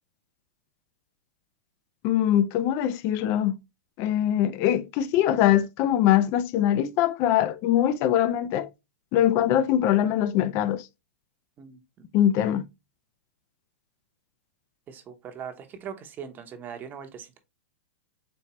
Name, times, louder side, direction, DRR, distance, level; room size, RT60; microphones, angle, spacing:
voice 1, 2.0-3.6 4.0-8.7 9.1-10.9 12.1-12.6, left 11 dB, 40° left, 0.5 m, -22 dB
voice 2, 11.6-12.1 14.9-17.4, right 7 dB, 25° right, 0.9 m, -41 dB
4.3 x 3.2 x 2.8 m
hypercardioid pair, 120°, 7 cm